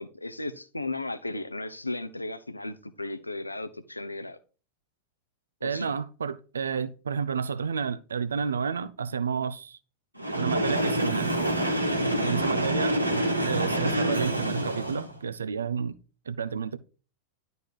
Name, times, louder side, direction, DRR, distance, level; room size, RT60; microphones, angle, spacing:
voice 1, 0.0-4.4 5.6-5.9 12.0-12.5, left 2 dB, 85° left, 0.8 m, -35 dB
voice 2, 5.6-9.8 10.4-11.4 12.2-13.0 13.5-15.9 16.3-16.8, right 6 dB, 70° right, 0.7 m, -30 dB
Train, 10.2-15.2, right 1 dB, 85° right, 1.6 m, -27 dB
11.5 x 4.1 x 4.8 m
figure-of-eight pair, 90°, 0 cm